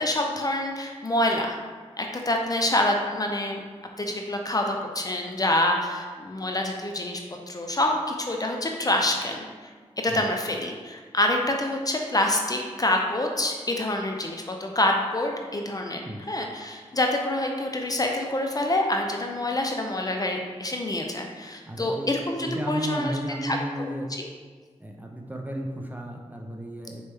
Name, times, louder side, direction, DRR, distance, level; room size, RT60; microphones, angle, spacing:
voice 1, 0.0-1.6 2.0-3.6 4.0-7.2 7.5-9.5 10.0-24.3, left 1 dB, 30° left, 2 dB, 0.5 m, -27 dB
voice 2, 21.7-22.1 22.4-24.1 24.8-27.0, right 1 dB, 15° right, 1 dB, 0.5 m, -33 dB
4.2 x 3.1 x 3.5 m, 1.5 s
cardioid pair, 55°, 12 cm